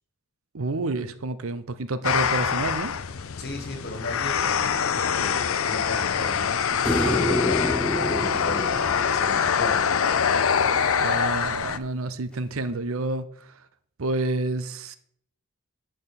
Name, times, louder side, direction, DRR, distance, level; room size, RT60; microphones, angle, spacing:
voice 1, 0.5-2.9 11.0-13.5 14.0-15.0, right 2 dB, 75° right, 0.7 m, -29 dB
sound 1, 2.0-11.8, left 7 dB, 75° left, 0.5 m, -24 dB
voice 2, 3.4-10.2, left 1 dB, 45° left, 1.7 m, -37 dB
sound 2, 6.8-10.1 12.7-12.8, left 1 dB, 5° left, 0.6 m, -28 dB
10.5 x 3.9 x 6.9 m
head